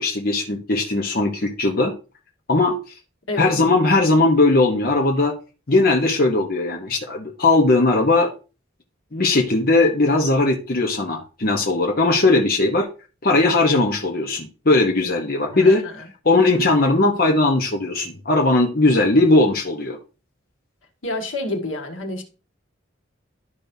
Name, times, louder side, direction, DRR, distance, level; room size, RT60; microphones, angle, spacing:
voice 1, 0.0-1.9 2.5-2.7 3.4-5.3 5.7-8.3 9.1-12.9 13.2-15.8 16.2-20.0, left 2 dB, 45° left, 1.0 m, -18 dB
voice 2, 15.5-16.0 21.0-22.2, left 2 dB, 80° left, 1.8 m, -28 dB
12.0 x 5.4 x 2.7 m
head